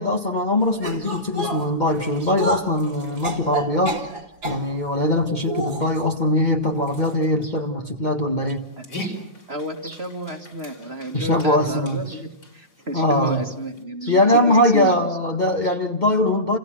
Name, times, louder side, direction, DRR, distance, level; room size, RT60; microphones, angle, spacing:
voice 1, 0.0-4.0 4.4-8.6 9.0-9.2 9.8-9.9 11.1-12.2 12.9-13.4 14.0-16.6, left 1 dB, 25° left, 2 dB, 1.9 m, -21 dB
sound 1, 0.8-4.7 5.4-6.1 6.9-7.1 7.4-7.5 8.5-8.6, right 1 dB, 60° right, 3.4 m, -29 dB
Dog, 8.5-13.8, equal, 60° left, 5.7 m, -40 dB
voice 2, 9.5-15.1, equal, 35° right, 4 dB, 2.5 m, -31 dB
29.5 x 29.0 x 6.4 m, 0.77 s
omnidirectional pair, 2.0 m